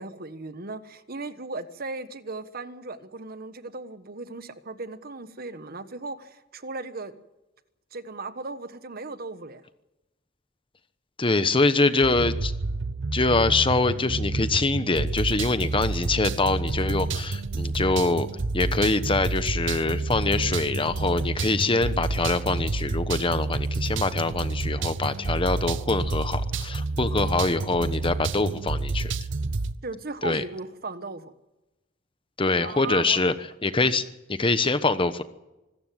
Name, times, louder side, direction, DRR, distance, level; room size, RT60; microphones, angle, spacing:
voice 1, 0.0-7.1 7.9-9.6 29.8-31.3 32.5-33.4 33.8-33.9, right 3 dB, 50° right, 11 dB, 1.3 m, -37 dB
voice 2, 11.2-12.5 13.1-18.3 18.5-29.3 30.2-30.4 32.4-33.3 33.6-35.2, left 3 dB, 25° left, 12 dB, 1.1 m, -24 dB
sound 1, 12.0-29.7, right 3 dB, 65° right, 0.8 m, -29 dB
25.0 x 14.0 x 7.7 m, 1.0 s
head